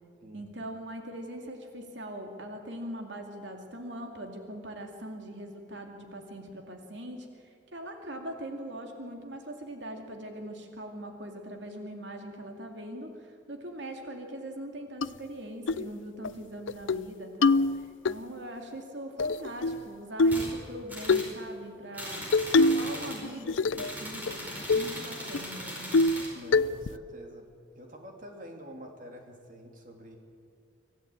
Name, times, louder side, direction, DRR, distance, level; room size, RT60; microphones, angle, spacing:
voice 1, 0.3-25.9, right 1 dB, 70° right, 3 dB, 2.3 m, -41 dB
sound 1, 15.0-15.1 15.7-15.9 16.2-16.3 16.7-17.0 17.4-18.2 19.2-19.8 20.2-20.5 21.1-21.3 22.3-22.9 23.2-23.9 24.3-24.4 24.7-24.9 25.3-25.4 25.9-26.2 26.5-27.0, left 3 dB, 85° left, 0.5 m, -24 dB
sound 2, 20.3-20.5 20.9-21.3 21.9-23.3 23.7-26.3, equal, 10° right, 4.8 m, -39 dB
voice 2, 26.3-27.4 27.7-30.2, equal, 45° right, 2 dB, 3.2 m, -47 dB
25.0 x 15.5 x 8.7 m, 2.3 s
head